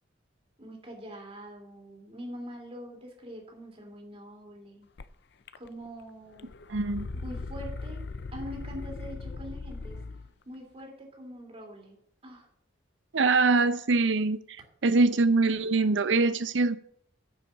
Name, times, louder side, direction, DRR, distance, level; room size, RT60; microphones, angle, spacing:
voice 1, 0.6-4.9 5.6-6.5 7.2-8.0 8.3-10.0 10.4-12.0 12.2-12.5 14.8-15.0, equal, 30° right, 3.1 m, -43 dB
sound 1, 5.0-5.1 5.5-6.0 6.3-10.3, left 3 dB, 65° left, 0.5 m, -39 dB
voice 2, 6.7-7.1 13.1-14.6 14.8-16.7, right 3 dB, 75° right, 0.6 m, -23 dB
9.9 x 5.8 x 7.3 m
head